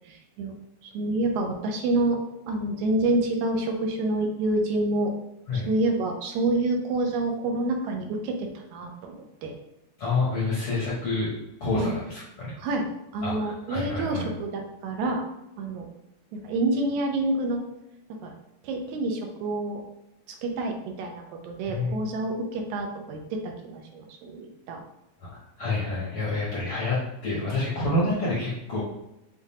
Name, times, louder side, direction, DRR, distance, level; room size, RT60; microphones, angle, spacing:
voice 1, 0.1-0.5 0.8-2.2 2.5-5.1 5.5-9.5 11.8-11.9 12.6-12.9 13.1-15.2 15.6-15.9 16.3-17.6 18.2-18.3 18.6-19.8 20.4-24.8, right 2 dB, 80° right, 3 dB, 2.0 m, -28 dB
voice 2, 10.0-11.3 11.6-12.5 13.2-14.3 21.7-21.9 25.3-28.8, left 2 dB, 60° left, -7 dB, 1.4 m, -28 dB
6.9 x 2.4 x 2.7 m, 0.86 s
omnidirectional pair, 3.4 m